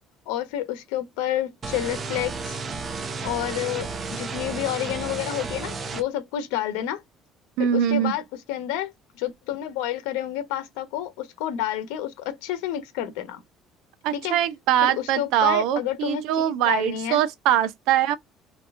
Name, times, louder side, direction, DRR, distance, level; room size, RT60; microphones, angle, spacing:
voice 1, 0.3-2.6 3.2-7.0 7.6-13.4 14.1-14.4 14.8-17.2, left 11 dB, 90° left, 0.9 m, -29 dB
sound 1, 1.6-6.0, right 4 dB, 40° right, 0.8 m, -32 dB
voice 2, 7.6-8.1 14.0-18.2, right 11 dB, 80° right, 0.6 m, -22 dB
2.9 x 2.3 x 3.4 m
cardioid pair, 95°, 0 cm